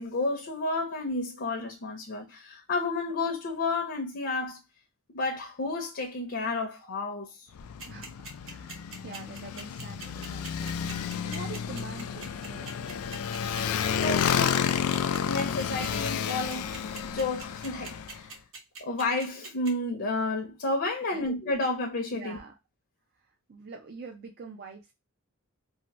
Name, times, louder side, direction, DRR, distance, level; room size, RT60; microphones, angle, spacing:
voice 1, 0.0-4.6 5.1-7.5 14.0-18.3 18.8-22.4, left 2 dB, 50° left, 0.6 m, -31 dB
Motorcycle, 7.5-18.2, left 8 dB, 90° left, 0.3 m, -31 dB
sound 1, 7.8-19.7, right 4 dB, 65° right, 1.1 m, -42 dB
voice 2, 7.9-13.4 21.0-21.3 22.1-22.5 23.1-24.9, right 4 dB, 45° right, 0.5 m, -46 dB
2.7 x 2.6 x 2.9 m
head